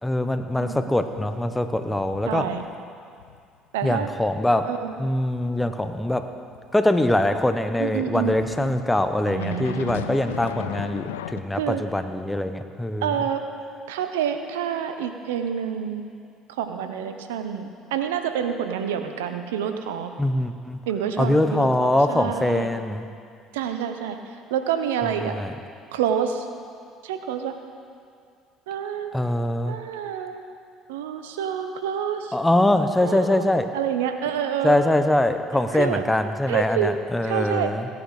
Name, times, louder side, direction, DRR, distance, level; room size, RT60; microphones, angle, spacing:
voice 1, 0.0-2.5 3.8-6.3 6.7-13.1 20.2-20.8 21.2-23.1 25.2-25.5 29.1-29.8 32.3-33.7 34.6-37.9, left 1 dB, 10° left, 8 dB, 0.9 m, -23 dB
voice 2, 0.6-0.9 2.3-2.6 3.7-4.1 4.6-4.9 7.8-8.7 9.3-10.1 11.5-11.8 13.0-13.5 13.9-16.0 16.6-20.1 20.9-22.7 23.5-24.2 24.5-25.4 25.9-26.5 27.0-27.5 28.7-29.1 29.7-30.4 30.9-32.3 33.0-33.5 33.7-34.8 35.7-36.0 36.5-36.9 37.3-37.7, right 8 dB, 85° right, 7 dB, 0.8 m, -28 dB
sound 1, 0.9-2.8 3.1-3.4 3.8-7.4 8.3-11.4, left 11 dB, 90° left, 0.4 m, -39 dB
17.0 x 9.4 x 4.9 m, 2.3 s
hypercardioid pair, 70°, 0 cm